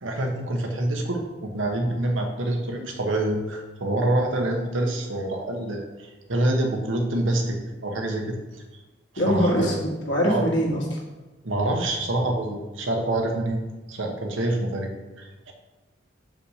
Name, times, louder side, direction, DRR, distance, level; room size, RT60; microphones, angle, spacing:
voice 1, 0.0-8.6 9.1-9.8 10.2-10.4 11.4-13.6 13.9-15.5, right 1 dB, 80° right, 2 dB, 1.3 m, -26 dB
voice 2, 9.2-11.0, equal, 65° left, -2 dB, 1.9 m, -23 dB
6.9 x 5.7 x 5.0 m, 1.1 s
head